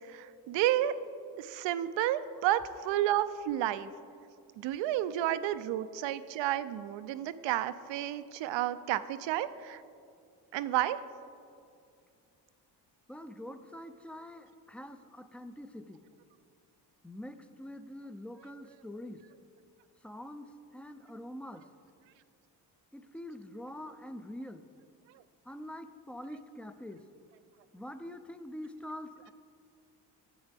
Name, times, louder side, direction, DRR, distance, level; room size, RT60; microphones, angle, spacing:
voice 1, 0.1-0.9 1.4-3.9 4.6-9.8 10.5-11.0, right 13 dB, 70° right, 14 dB, 0.5 m, -31 dB
voice 2, 13.1-16.0 17.0-19.2 20.0-21.7 22.9-24.7 25.5-27.0 27.7-29.3, left 1 dB, 5° left, 9 dB, 0.4 m, -45 dB
11.0 x 7.9 x 3.4 m, 2.3 s
supercardioid pair, 65°, 45 cm